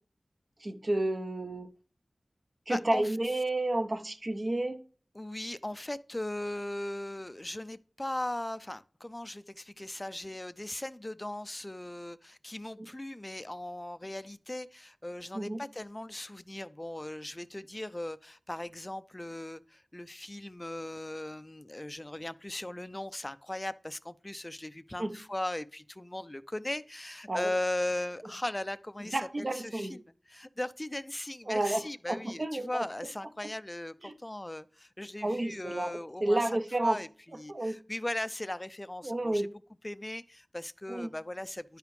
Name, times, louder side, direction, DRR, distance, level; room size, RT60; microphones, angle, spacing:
voice 1, 0.6-1.7 2.7-4.8 15.3-15.6 25.0-25.1 27.3-27.5 29.1-30.0 31.5-31.8 32.1-32.8 34.0-34.1 35.2-37.0 37.5-37.8 39.0-39.5 40.9-41.1, right 1 dB, 50° right, 0.8 m, -31 dB
voice 2, 2.7-3.2 5.1-36.5 36.8-41.8, left 1 dB, 25° left, 0.4 m, -38 dB
10.5 x 5.0 x 3.2 m
wide cardioid pair, 60°, 0 cm